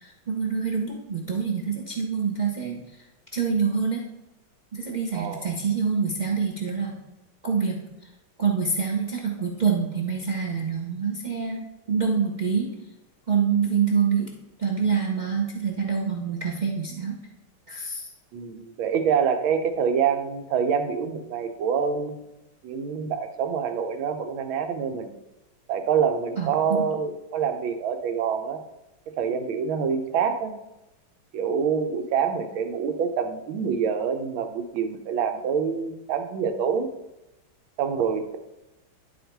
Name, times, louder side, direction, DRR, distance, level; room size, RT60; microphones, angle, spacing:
voice 1, 0.0-2.8 3.3-4.1 4.7-6.9 7.4-7.8 8.4-12.7 13.3-14.3 14.6-17.2 17.7-18.0 26.4-26.8, right 6 dB, 45° right, 0 dB, 0.5 m, -26 dB
voice 2, 5.1-5.5 18.3-22.2 22.6-25.1 25.7-28.6 29.2-30.5 31.3-36.9 37.8-38.4, right 7 dB, 75° right, 7 dB, 1.6 m, -26 dB
11.0 x 4.1 x 4.5 m, 0.94 s
omnidirectional pair, 2.3 m